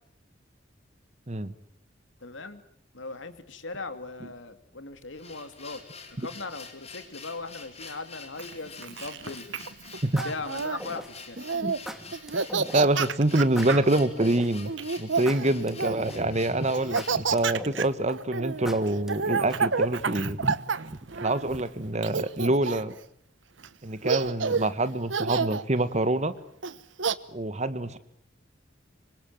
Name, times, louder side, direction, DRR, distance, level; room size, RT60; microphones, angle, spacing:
voice 1, 2.2-2.6 2.9-5.8 6.1-9.5 10.2-11.4, left 3 dB, 85° left, 10 dB, 2.8 m, -39 dB
sound 1, 5.1-17.3, left 5 dB, 35° left, 4.3 m, -46 dB
Laughter, 8.4-10.8 11.4-11.8 12.1-13.9 14.7-16.2 16.7-21.6 22.0-23.0 23.6-23.7 24.0-24.7 25.1-25.6 26.6-27.1, right 5 dB, 80° right, 1.1 m, -29 dB
sound 2, 9.3-9.6 10.2-11.3 11.9-12.8 13.6-14.7 15.3-16.4 17.0-18.1 18.7-19.8, equal, ahead, 2.3 m, -40 dB
voice 2, 12.5-20.6 20.9-22.9 23.8-26.3 27.3-28.0, right 1 dB, 40° right, 13 dB, 1.6 m, -26 dB
26.0 x 25.0 x 7.6 m, 0.67 s
head